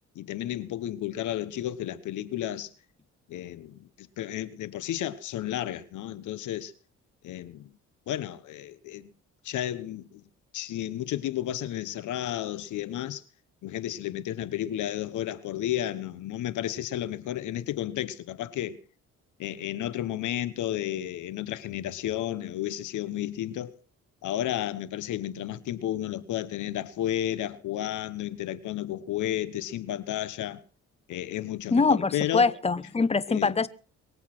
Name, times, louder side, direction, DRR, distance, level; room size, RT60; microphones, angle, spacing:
voice 1, 0.1-2.7 3.3-6.7 7.2-7.7 8.1-9.1 9.4-10.2 10.5-13.2 13.6-18.8 19.4-23.8 24.2-30.6 31.1-32.5 33.3-33.5, left 12 dB, 80° left, 1.1 m, -32 dB
voice 2, 31.7-33.7, left 4 dB, 20° left, 1.0 m, -23 dB
23.0 x 8.3 x 6.1 m
cardioid pair, 90°, 30 cm